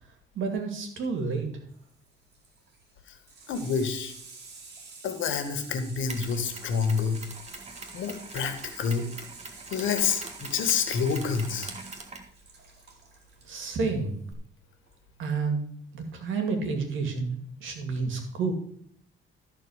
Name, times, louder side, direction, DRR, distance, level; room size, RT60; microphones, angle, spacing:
voice 1, 0.4-1.5 13.5-14.2 15.2-15.6 15.9-18.5, right 4 dB, 80° right, 5 dB, 2.4 m, -30 dB
Water tap faucet / Sink (filling or washing), 1.7-13.6 14.9-15.0, right 3 dB, 55° right, 2.7 m, -49 dB
voice 2, 3.5-4.1 5.0-7.2 7.9-9.1 9.7-11.7, left 6 dB, 80° left, 7 dB, 1.6 m, -28 dB
Mechanisms, 6.1-14.3, right 3 dB, 35° right, 1.8 m, -44 dB
13.5 x 4.5 x 6.4 m, 0.63 s
cardioid pair, 90°, 20 cm